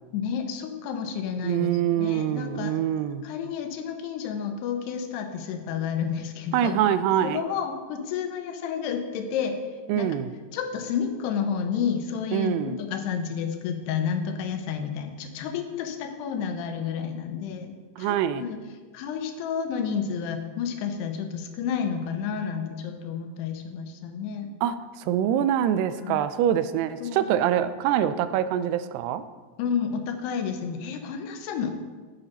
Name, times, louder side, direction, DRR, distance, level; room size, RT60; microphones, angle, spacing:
voice 1, 0.1-1.7 2.0-2.8 3.2-6.8 7.2-9.6 10.0-10.2 10.5-18.6 18.9-24.5 25.9-26.2 27.0-27.3 29.6-31.7, left 7 dB, 85° left, 6 dB, 2.9 m, -30 dB
voice 2, 1.4-3.3 6.5-7.4 9.9-10.3 12.3-12.8 18.0-18.4 24.6-29.2, right 10 dB, 90° right, 13 dB, 2.6 m, -25 dB
8.8 x 8.3 x 4.1 m, 1.4 s
omnidirectional pair, 4.6 m